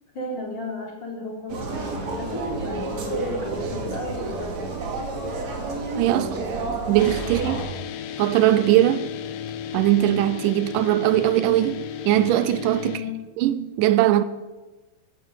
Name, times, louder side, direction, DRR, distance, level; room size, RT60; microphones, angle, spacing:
voice 1, 0.1-4.7 6.1-6.6 7.2-7.6 12.8-13.2, left 1 dB, 35° left, 3.8 m, -34 dB
sound 1, 1.5-7.6, right 3 dB, 55° right, 3.3 m, -30 dB
voice 2, 6.0-6.3 6.9-7.6 8.2-9.1 9.7-13.0 13.4-14.2, right 13 dB, 80° right, 2.1 m, -20 dB
sound 2, 7.0-13.0, left 9 dB, 80° left, 2.5 m, -34 dB
14.0 x 10.5 x 8.2 m
omnidirectional pair, 3.9 m